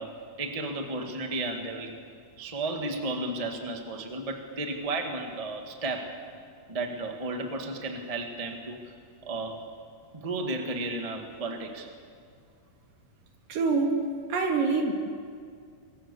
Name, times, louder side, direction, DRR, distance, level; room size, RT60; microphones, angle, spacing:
voice 1, 0.0-2.0 2.4-6.2 6.7-8.9 9.2-9.6 10.1-11.9, right 2 dB, 20° right, 3 dB, 1.0 m, -33 dB
voice 2, 13.5-14.0 14.3-14.9, right 4 dB, 65° right, 3 dB, 3.9 m, -25 dB
27.0 x 24.0 x 7.2 m, 2.3 s
omnidirectional pair, 4.2 m